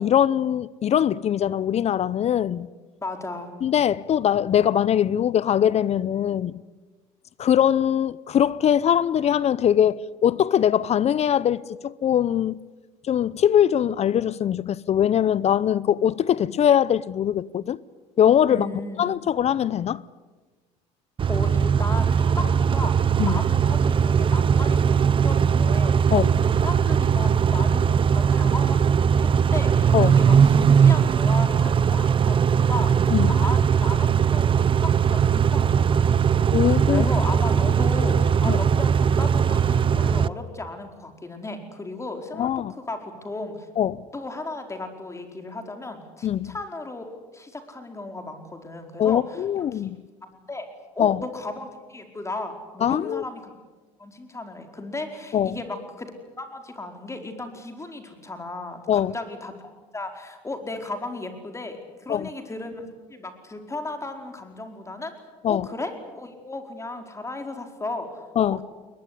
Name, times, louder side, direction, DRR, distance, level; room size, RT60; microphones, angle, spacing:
voice 1, 0.0-2.7 3.6-6.6 7.4-12.6 13.1-17.8 18.2-18.7 19.0-20.0 23.2-23.4 26.1-26.3 29.9-30.2 33.1-33.3 36.5-37.1 38.5-38.6 42.4-42.7 43.8-44.1 46.2-46.5 49.0-50.0 51.0-51.2 52.8-53.2 55.3-55.6 58.9-59.1 62.1-62.3 65.4-65.7 68.4-68.6, left 9 dB, 45° left, 0.7 m, -22 dB
voice 2, 3.0-3.5 18.5-19.1 21.3-43.7 44.1-49.4 49.7-49.8 50.2-50.7 50.9-53.5 54.0-56.1 56.4-65.1 65.5-68.6, left 2 dB, 20° left, 4.7 m, -35 dB
Car / Idling / Accelerating revving vroom, 21.2-40.3, right 7 dB, 35° right, 0.7 m, -20 dB
21.0 x 21.0 x 9.9 m
supercardioid pair, 80°, 15 cm